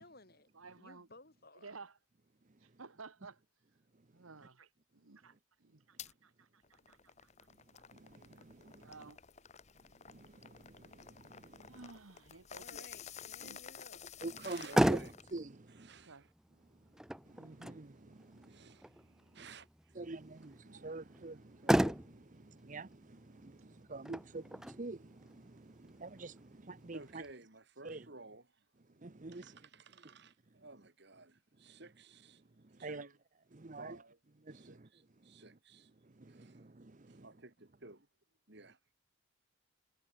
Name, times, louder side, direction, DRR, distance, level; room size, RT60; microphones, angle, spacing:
voice 1, 0.0-0.5 0.8-1.7 12.6-14.2, left 2 dB, 50° left, 5.8 m, -58 dB
voice 2, 0.5-1.1 1.5-2.0 2.6-3.4 4.1-5.3 5.6-7.3 7.7-7.8 8.8-9.2 11.6-12.9 13.2-13.6 15.9-16.2, right 4 dB, 90° right, 1.5 m, -54 dB
sound 1, 6.0-6.1 6.6-15.4, left 8 dB, 35° left, 0.8 m, -52 dB
voice 3, 7.9-8.9 10.1-11.8 14.2-15.0 15.3-15.9 17.3-18.8 19.4-19.5 20.0-27.2 27.8-28.0 29.0-29.5 32.8-33.0 33.5-34.0 34.5-34.9 36.2-37.3, right 2 dB, 40° right, 0.8 m, -47 dB
Motor vehicle (road), 14.4-27.3, equal, 5° right, 0.5 m, -37 dB
voice 4, 14.4-15.1 15.7-16.3 18.5-20.0 20.4-21.1 21.6-21.7 26.9-28.7 29.3-32.4 32.8-33.2 33.7-34.2 34.5-35.9 36.3-36.6 37.1-37.5 37.8-38.0 38.5-38.8, right 3 dB, 55° right, 3.0 m, -55 dB
head